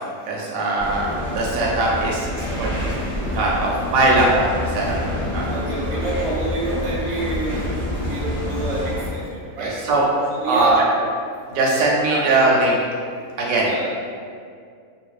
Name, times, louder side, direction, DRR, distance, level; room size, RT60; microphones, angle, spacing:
voice 1, 0.3-2.9 3.3-4.9 5.3-5.5 5.8-5.9 9.6-10.1 10.4-10.9 11.5-12.8 13.4-13.7, right 2 dB, 70° right, -3 dB, 0.9 m, -20 dB
sound 1, 0.8-9.2, left 1 dB, 45° left, 0.5 m, -27 dB
voice 2, 5.5-9.7 10.3-10.8 12.0-12.5 13.6-13.9, right 2 dB, 35° right, -9 dB, 0.7 m, -28 dB
2.5 x 2.2 x 2.3 m, 2.2 s
omnidirectional pair, 1.6 m